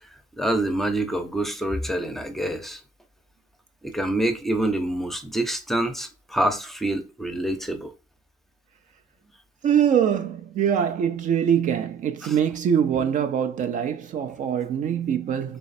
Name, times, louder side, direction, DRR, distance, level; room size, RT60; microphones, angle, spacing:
voice 1, 0.0-2.8 3.8-7.9 12.2-12.3, right 1 dB, ahead, 0.6 m, -26 dB
voice 2, 9.6-15.6, right 8 dB, 50° right, 0.4 m, -23 dB
3.3 x 3.1 x 4.0 m
cardioid pair, 110°, 17 cm